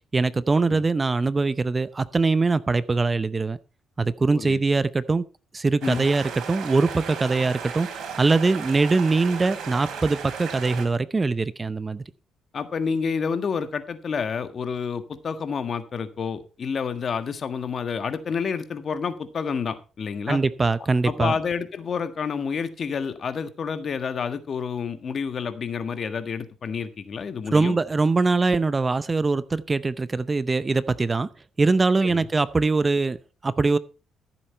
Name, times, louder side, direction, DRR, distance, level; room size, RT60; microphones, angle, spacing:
voice 1, 0.1-3.6 4.0-5.2 5.5-12.0 20.3-21.3 27.5-31.3 31.6-33.8, right 3 dB, 25° right, 0.6 m, -22 dB
sound 1, 5.8-10.9, right 6 dB, 75° right, 3.7 m, -35 dB
voice 2, 12.5-20.4 21.0-27.8 32.0-32.2, left 6 dB, 50° left, 1.5 m, -29 dB
14.0 x 7.8 x 4.3 m
cardioid pair, 90°, 0 cm